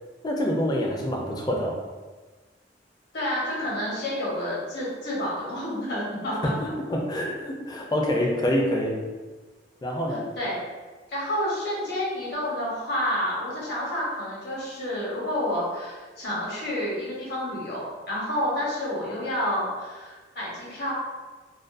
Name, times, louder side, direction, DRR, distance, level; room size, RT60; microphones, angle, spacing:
voice 1, 0.2-1.8 6.4-6.5 6.9-9.0 9.8-10.2, equal, 20° left, 0 dB, 0.4 m, -26 dB
voice 2, 3.1-6.5 10.1-10.6 11.1-20.9, left 1 dB, 65° left, -6 dB, 0.9 m, -29 dB
2.4 x 2.2 x 2.4 m, 1.3 s
head